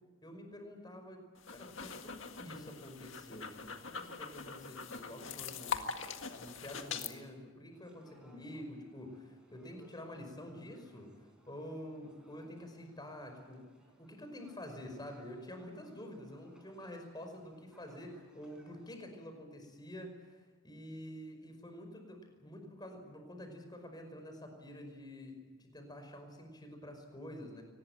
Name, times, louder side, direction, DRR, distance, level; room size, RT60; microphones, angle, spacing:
voice 1, 0.2-1.2 1.5-5.8 6.3-11.1 11.5-13.6 14.0-27.6, left 1 dB, 20° left, 5 dB, 5.3 m, -48 dB
sound 1, 1.4-7.1, left 5 dB, 65° left, 1.9 m, -42 dB
sound 2, 7.7-19.0, equal, 5° right, 5.1 m, -65 dB
23.5 x 20.0 x 9.0 m, 1.3 s
head